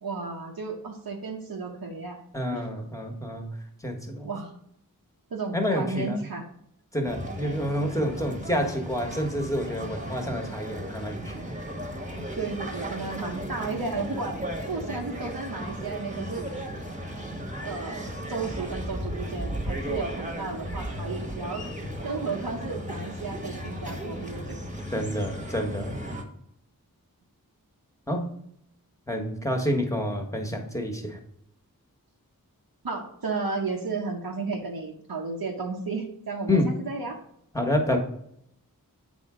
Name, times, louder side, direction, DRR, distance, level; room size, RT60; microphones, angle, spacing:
voice 1, 0.0-2.2 2.5-2.7 4.2-4.6 5.3-6.5 12.3-16.6 17.6-21.7 22.0-24.6 32.8-37.2, right 4 dB, 85° right, -1 dB, 1.0 m, -33 dB
voice 2, 2.3-3.5 3.8-4.3 5.5-6.2 6.9-11.5 24.9-26.0 28.1-28.3 29.1-31.2 36.5-36.7 37.5-38.0, left 1 dB, 10° left, 3 dB, 1.3 m, -28 dB
sound 1, 7.0-26.2, equal, 20° right, 1.2 m, -35 dB
8.2 x 3.6 x 4.9 m, 0.72 s
wide cardioid pair, 55°, 36 cm